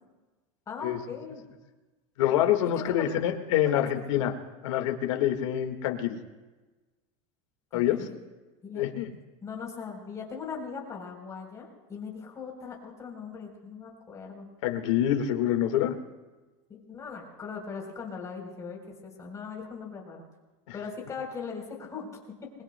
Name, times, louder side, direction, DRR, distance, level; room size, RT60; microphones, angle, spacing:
voice 1, 0.7-1.4 2.7-3.1 3.6-4.2 7.7-8.2 8.6-8.8 9.4-14.5 16.7-20.2 20.7-22.1 22.4-22.5, left 5 dB, 20° left, 0 dB, 4.0 m, -39 dB
voice 2, 2.2-4.3 4.6-6.2 7.7-8.1 8.8-9.1 14.6-15.9 20.7-20.8, left 11 dB, 80° left, 4 dB, 1.8 m, -26 dB
28.0 x 21.5 x 2.3 m, 1.2 s
supercardioid pair, 155°, 16 cm